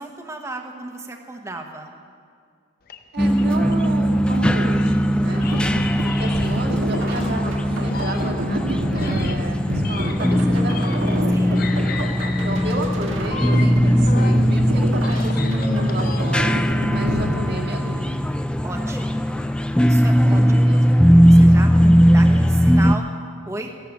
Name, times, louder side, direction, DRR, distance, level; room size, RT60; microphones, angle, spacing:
voice 1, 0.0-1.9 5.6-6.0 11.3-11.7 18.6-19.2 19.8-20.6 21.2-21.7 22.1-23.1 23.4-23.7, right 2 dB, 15° right, 3 dB, 1.1 m, -34 dB
sound 1, 2.9-4.9 5.4-7.5 7.9-11.3 11.6-14.5 14.9-16.6, left 5 dB, 45° left, 0.7 m, -36 dB
voice 2, 3.1-5.5 6.0-11.3 12.4-16.6 16.9-18.3 20.3-20.8, right 1 dB, 55° right, 0 dB, 2.0 m, -31 dB
sound 2, 3.2-23.0, equal, 5° left, 0.3 m, -18 dB
sound 3, 5.5-18.1, right 1 dB, 85° right, 1.7 m, -30 dB
14.5 x 11.5 x 7.2 m, 2.1 s
head